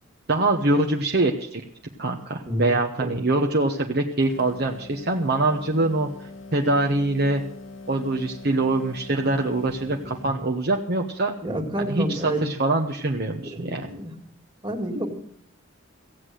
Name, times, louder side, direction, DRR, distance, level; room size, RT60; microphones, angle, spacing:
voice 1, 0.3-1.6 2.0-6.1 6.5-7.4 7.9-11.3 11.8-13.9, right 2 dB, 50° right, 2 dB, 1.0 m, -24 dB
voice 2, 2.5-2.8 3.0-3.2 10.2-10.3 11.4-12.5 13.4-14.1 14.6-15.1, right 1 dB, 25° right, 2 dB, 2.3 m, -29 dB
sound 1, 4.2-10.4, left 3 dB, 80° left, 1.5 m, -42 dB
16.0 x 8.3 x 7.7 m, 0.62 s
head